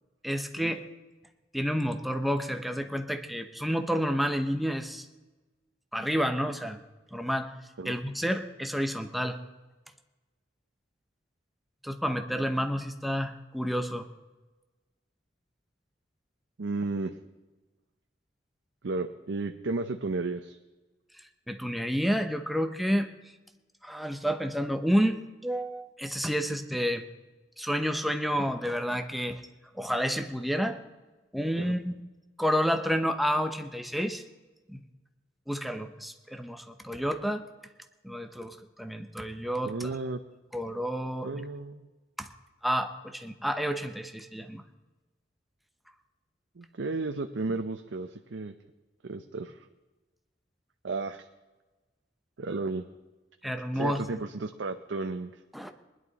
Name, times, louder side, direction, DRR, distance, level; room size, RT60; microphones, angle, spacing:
voice 1, 0.2-0.8 1.5-5.0 5.9-6.8 7.1-7.5 7.8-9.4 11.8-14.1 21.5-23.1 23.8-27.0 27.6-29.4 29.7-30.8 31.3-31.9 32.4-34.2 34.7-34.8 35.5-37.4 38.0-40.0 40.5-41.4 42.2-42.3 42.6-44.6 53.4-54.2 55.5-55.7, equal, ahead, 6 dB, 0.9 m, -30 dB
voice 2, 16.6-17.2 18.8-20.6 31.6-31.7 39.6-40.2 41.2-41.9 46.6-48.5 49.0-49.7 50.8-51.3 52.4-52.9 53.7-55.3, right 3 dB, 85° right, 6 dB, 0.7 m, -33 dB
20.5 x 11.0 x 4.1 m, 1.2 s
head